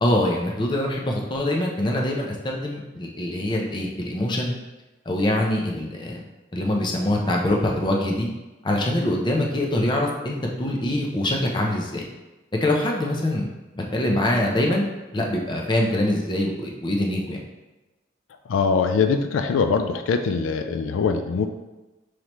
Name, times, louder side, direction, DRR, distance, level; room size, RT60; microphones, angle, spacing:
voice 1, 0.0-4.5 5.1-6.2 6.5-8.3 8.6-12.1 12.6-13.5 13.8-14.9 15.1-17.4, left 1 dB, 25° left, 0 dB, 0.6 m, -24 dB
voice 2, 18.5-21.5, left 5 dB, 85° left, 7 dB, 0.3 m, -22 dB
5.6 x 3.2 x 3.0 m, 1.1 s
head